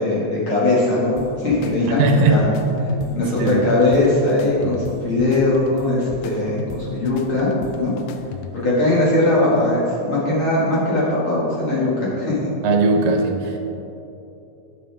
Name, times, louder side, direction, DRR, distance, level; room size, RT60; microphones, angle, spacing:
voice 1, 0.0-2.4 3.1-7.5 7.8-7.9 8.5-12.5, left 2 dB, 45° left, -7 dB, 2.4 m, -20 dB
sound 1, 1.2-8.8, left 5 dB, 85° left, 2.2 m, -36 dB
sound 2, 2.0-7.8, left 1 dB, 65° left, 3.6 m, -33 dB
voice 2, 2.0-2.4 3.3-3.7 12.6-13.6, right 3 dB, 80° right, 3 dB, 2.5 m, -18 dB
11.5 x 8.5 x 3.5 m, 3.0 s
omnidirectional pair, 3.9 m